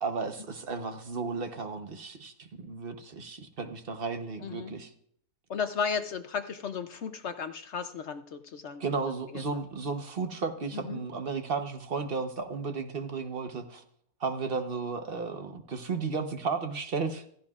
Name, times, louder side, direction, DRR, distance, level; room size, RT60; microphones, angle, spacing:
voice 1, 0.0-4.9 8.8-13.8 14.2-17.3, right 4 dB, 45° right, 6 dB, 1.1 m, -34 dB
voice 2, 4.4-4.7 5.5-8.9 9.3-9.4 10.7-11.0, left 6 dB, 60° left, 9 dB, 0.8 m, -34 dB
15.5 x 15.0 x 2.4 m, 0.65 s
omnidirectional pair, 1.6 m